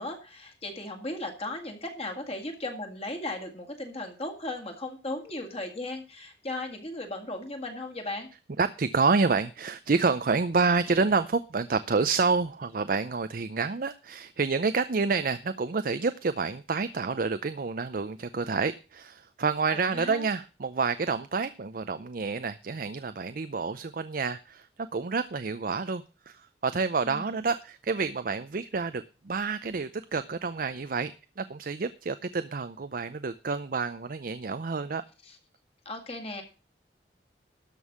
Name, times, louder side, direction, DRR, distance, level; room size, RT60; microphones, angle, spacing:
voice 1, 0.0-8.3 19.7-20.3 27.0-27.4 35.2-35.4 35.9-36.4, left 2 dB, 35° left, 3 dB, 2.0 m, -36 dB
voice 2, 8.6-35.0, right 4 dB, 50° right, 12 dB, 0.6 m, -28 dB
13.0 x 5.4 x 7.2 m, 0.33 s
head